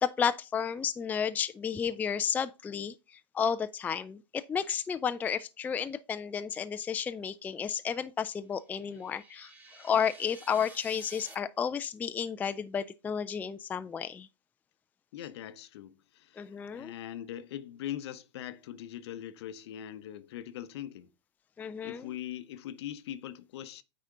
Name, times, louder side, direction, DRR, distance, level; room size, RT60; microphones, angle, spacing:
voice 1, 0.0-2.9 3.3-9.5 9.8-14.3 16.4-16.9 21.6-22.1, left 7 dB, 10° left, 0.3 m, -32 dB
sound 1, 8.6-11.3, right 2 dB, 10° right, 1.4 m, -52 dB
voice 2, 15.1-21.1 21.8-23.8, left 11 dB, 65° left, 0.7 m, -41 dB
8.9 x 4.3 x 3.7 m
hypercardioid pair, 115°, 15 cm